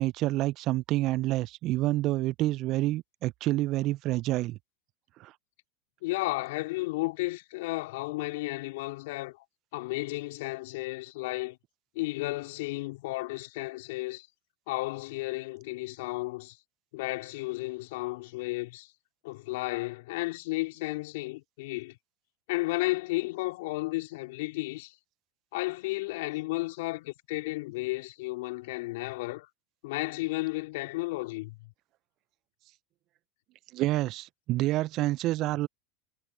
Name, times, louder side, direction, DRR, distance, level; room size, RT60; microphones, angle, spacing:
voice 1, 0.0-4.6 5.2-5.3 33.7-35.7, right 17 dB, 50° right, 0.5 m, -28 dB
voice 2, 6.0-9.4 9.7-11.6 12.0-14.3 14.7-16.6 16.9-18.9 19.2-22.0 22.5-24.9 25.5-29.5 29.8-31.7, left 21 dB, 70° left, 3.5 m, -33 dB
hypercardioid pair, 95°, 0 cm